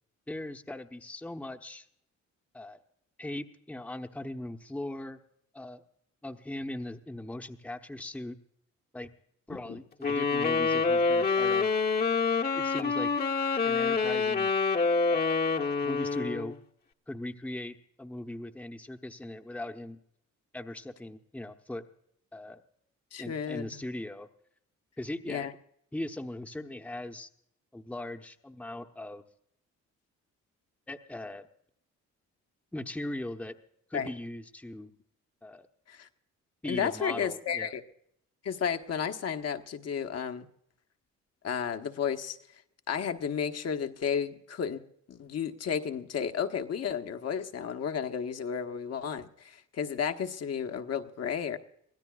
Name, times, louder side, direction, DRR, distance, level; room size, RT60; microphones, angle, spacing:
voice 1, 0.3-1.9 2.5-2.8 3.2-5.2 5.5-5.8 6.2-8.4 8.9-9.1 9.5-11.7 12.4-13.1 13.6-14.5 15.1-15.5 15.8-16.6 17.1-20.0 20.5-21.8 22.3-22.6 23.2-24.3 25.0-25.5 25.9-27.3 27.7-29.2 30.9-31.5 32.7-33.6 33.9-34.9 35.4-35.7 36.6-37.7, left 1 dB, 5° left, 5 dB, 0.9 m, -39 dB
sound 1, 10.0-16.6, left 4 dB, 30° left, 1.0 m, -27 dB
voice 2, 23.1-23.8 25.3-25.5 33.9-34.1 35.9-36.1 36.7-37.8 38.4-40.5 41.4-42.4 42.9-44.8 45.1-51.6, left 7 dB, 55° left, 7 dB, 1.2 m, -32 dB
24.0 x 16.5 x 2.4 m, 0.70 s
cardioid pair, 90°, 30 cm